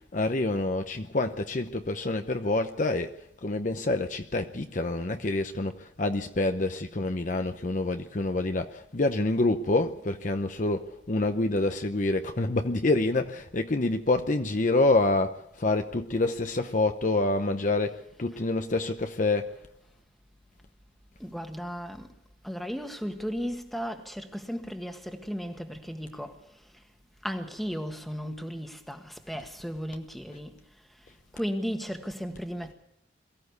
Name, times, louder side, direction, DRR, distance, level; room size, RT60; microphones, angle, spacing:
voice 1, 0.0-19.6, left 2 dB, 40° left, 0.8 m, -27 dB
voice 2, 21.2-22.1 22.4-26.4 27.2-30.5 31.3-32.7, equal, ahead, 1.6 m, -35 dB
22.5 x 14.5 x 8.1 m
head